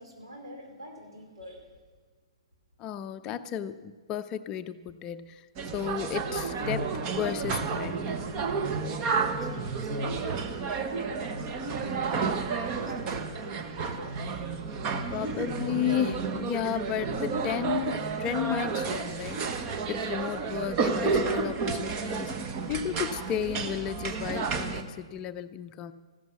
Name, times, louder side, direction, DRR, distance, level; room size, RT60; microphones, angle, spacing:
voice 1, 0.0-1.7 9.0-14.2, equal, 75° right, 1 dB, 4.7 m, -46 dB
voice 2, 2.8-5.5 5.7-8.0 15.1-22.3 22.7-25.9, left 9 dB, 25° left, 10 dB, 0.6 m, -33 dB
sound 1, 5.6-24.8, right 4 dB, 30° right, 1.2 m, -31 dB
15.0 x 12.5 x 6.3 m, 1.4 s
figure-of-eight pair, 120°, 3 cm